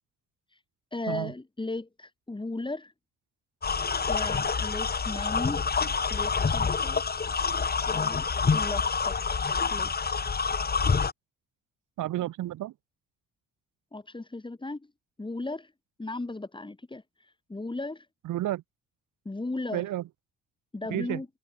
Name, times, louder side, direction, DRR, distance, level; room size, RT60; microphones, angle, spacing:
voice 1, 0.9-2.9 4.1-5.6 6.1-7.0 7.9-8.3 8.5-9.4 9.7-10.1 13.9-14.8 15.2-15.7 16.0-17.0 17.5-18.1 19.2-19.9 20.7-21.3, left 2 dB, 15° left, 4.8 m, -36 dB
sound 1, 3.6-11.1, left 5 dB, 30° left, 2.4 m, -27 dB
voice 2, 12.0-12.7 18.2-18.6 19.7-20.0 20.9-21.2, right 14 dB, 85° right, 7.3 m, -31 dB
open air
cardioid pair, 90°, 30 cm